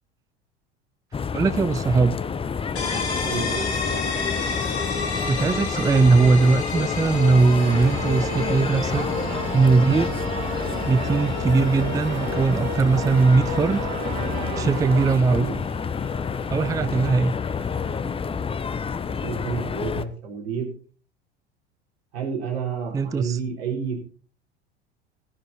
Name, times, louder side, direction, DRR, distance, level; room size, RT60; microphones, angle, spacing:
sound 1, 1.1-20.1, left 6 dB, 15° left, 0.8 m, -29 dB
voice 1, 1.3-2.2 5.3-9.1 9.5-10.1 10.9-13.9 14.6-15.5 16.5-17.3 22.9-23.4, right 4 dB, 10° right, 0.5 m, -20 dB
sound 2, 2.8-18.3, left 5 dB, 85° left, 3.7 m, -32 dB
voice 2, 3.2-3.7 15.3-15.6 19.2-20.7 22.1-24.0, right 6 dB, 70° right, 4.3 m, -30 dB
sound 3, 7.6-15.2, right 17 dB, 50° right, 0.8 m, -34 dB
15.0 x 9.9 x 4.3 m
figure-of-eight pair, 75°, 33 cm